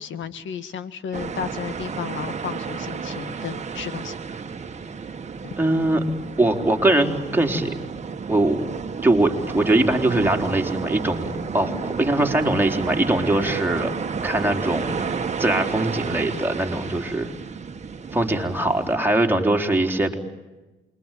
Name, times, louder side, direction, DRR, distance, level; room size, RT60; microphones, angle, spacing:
voice 1, 0.0-4.2 5.4-5.5 11.6-11.8, left 8 dB, 70° left, 12 dB, 1.8 m, -33 dB
sound 1, 1.1-19.0, right 5 dB, 35° right, 1.8 m, -31 dB
voice 2, 5.6-6.0 6.4-7.8 8.3-8.7 9.0-13.9 14.2-15.1 15.4-17.3 18.1-20.2, right 1 dB, 10° right, 2 dB, 4.0 m, -22 dB
28.0 x 22.5 x 9.3 m, 1.1 s
cardioid pair, 90°, 20 cm